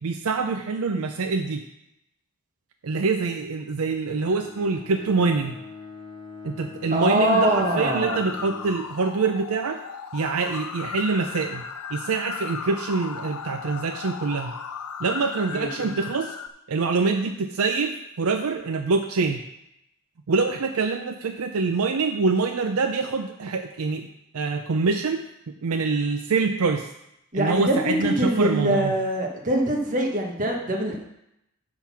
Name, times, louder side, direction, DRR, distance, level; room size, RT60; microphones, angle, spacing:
voice 1, 0.0-1.6 2.8-5.6 6.4-9.8 10.1-11.6 11.9-14.5 15.0-16.3 16.7-19.4 20.3-24.1 24.3-25.2 25.6-26.9 27.3-28.9, right 4 dB, 70° right, 6 dB, 0.5 m, -25 dB
Bowed string instrument, 4.0-8.9, left 5 dB, 25° left, 2.0 m, -42 dB
voice 2, 6.9-8.2 15.5-15.9 27.3-31.0, right 1 dB, 35° right, 1 dB, 1.3 m, -23 dB
sound 1, 7.3-16.5, left 7 dB, 90° left, 0.5 m, -36 dB
10.0 x 3.9 x 6.0 m, 0.83 s
head